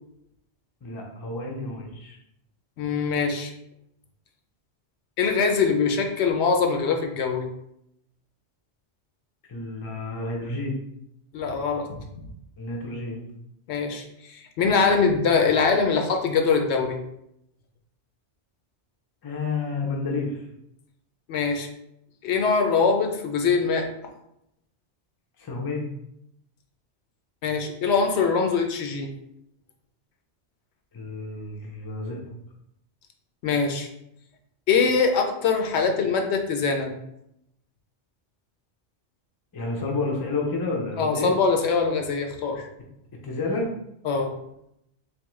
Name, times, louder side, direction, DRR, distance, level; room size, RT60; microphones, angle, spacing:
voice 1, 0.8-2.2 9.5-10.8 12.6-13.2 19.2-20.4 25.4-25.8 30.9-32.3 39.5-41.4 43.2-43.7, left 3 dB, 30° left, 0 dB, 0.4 m, -30 dB
voice 2, 2.8-3.5 5.2-7.5 11.3-12.0 13.7-17.0 21.3-21.7 22.2-23.9 27.4-29.1 33.4-33.9 34.7-37.0 41.0-42.7 44.0-44.3, left 5 dB, 75° left, 4 dB, 0.8 m, -23 dB
3.6 x 2.9 x 3.0 m, 0.79 s
omnidirectional pair, 1.2 m